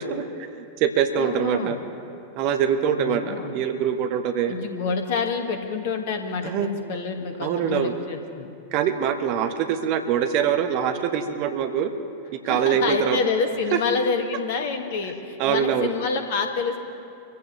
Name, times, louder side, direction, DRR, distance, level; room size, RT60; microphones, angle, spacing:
voice 1, 0.0-1.8 2.4-4.6 6.4-6.7 7.4-7.9 8.7-11.9 12.3-13.2 13.7-13.8 15.4-15.9, right 8 dB, 45° right, 7 dB, 1.1 m, -24 dB
voice 2, 1.2-1.8 3.0-3.6 4.5-8.5 12.4-16.8, left 5 dB, 55° left, 5 dB, 1.8 m, -28 dB
25.0 x 15.0 x 3.2 m, 2.5 s
figure-of-eight pair, 90°, 0 cm